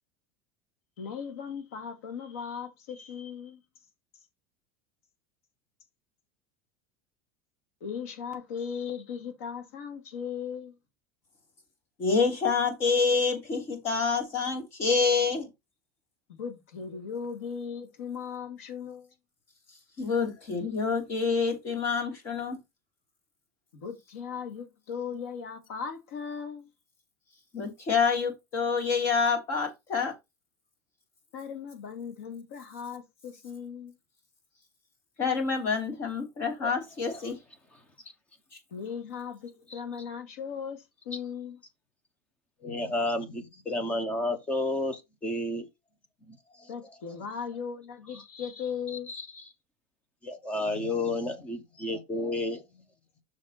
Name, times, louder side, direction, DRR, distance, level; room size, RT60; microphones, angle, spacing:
voice 1, 1.0-3.6 7.8-10.8 16.3-19.1 23.7-26.7 31.3-34.0 38.7-41.6 46.7-49.1, left 7 dB, 90° left, 2.6 m, -38 dB
voice 2, 12.0-15.5 19.7-22.6 27.5-30.1 35.2-37.4 38.5-38.6, left 5 dB, 35° left, 3.1 m, -27 dB
voice 3, 42.6-45.6 46.3-46.4 49.1-49.2 50.2-52.6, left 2 dB, 15° left, 1.2 m, -31 dB
6.5 x 5.8 x 4.1 m
supercardioid pair, 165°, 8 cm